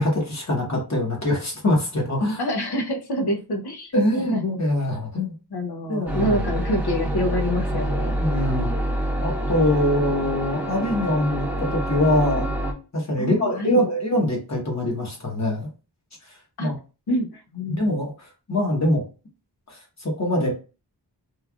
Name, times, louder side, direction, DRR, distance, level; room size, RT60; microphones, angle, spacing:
voice 1, 0.0-2.4 3.9-5.3 5.9-6.4 8.2-8.7 9.2-12.5 12.9-15.7 16.6-16.7 17.7-18.1 18.5-19.0 19.7-20.5, left 1 dB, 40° left, -1 dB, 1.1 m, -23 dB
voice 2, 2.4-3.9 4.3-4.6 5.5-8.2 13.2-13.9 16.6-16.7 17.1-17.8, equal, 70° left, 4 dB, 0.7 m, -26 dB
sound 1, 6.1-12.7, right 1 dB, 5° right, 0.8 m, -26 dB
3.2 x 2.4 x 2.3 m, 0.33 s
wide cardioid pair, 85°, 40 cm